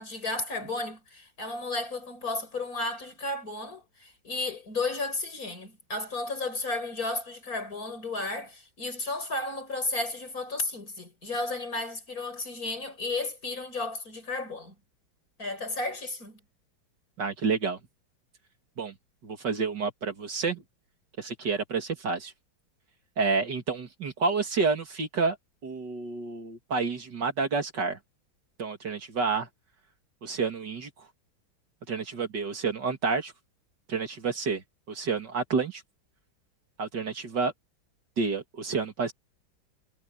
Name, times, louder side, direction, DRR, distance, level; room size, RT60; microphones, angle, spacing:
voice 1, 0.0-14.7 15.4-16.4, left 2 dB, 45° left, 5.5 m, -33 dB
voice 2, 17.2-17.8 18.8-18.9 19.2-20.6 21.2-22.3 23.2-25.4 25.6-28.0 28.6-29.5 30.2-31.1 31.9-33.3 33.9-35.8 36.8-37.5 38.2-39.1, right 4 dB, 60° right, 2.8 m, -29 dB
omnidirectional pair, 2.2 m